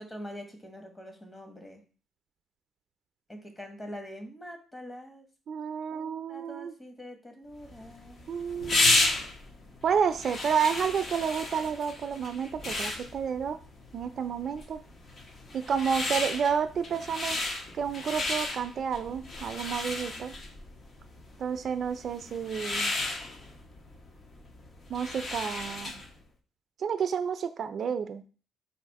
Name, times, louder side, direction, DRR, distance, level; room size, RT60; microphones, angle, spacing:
voice 1, 0.0-1.8 3.3-5.3 5.9-8.3 15.5-16.1, equal, 20° left, 4 dB, 1.1 m, -44 dB
voice 2, 5.5-6.7 8.3-9.2 9.8-13.6 13.9-14.8 15.5-17.4 17.7-20.3 21.4-22.9 24.9-26.0 26.8-28.2, right 7 dB, 60° right, 10 dB, 0.4 m, -30 dB
sound 1, 7.6-26.2, left 2 dB, 50° left, 0.8 m, -33 dB
4.1 x 2.4 x 4.6 m, 0.37 s
cardioid pair, 90°, 0 cm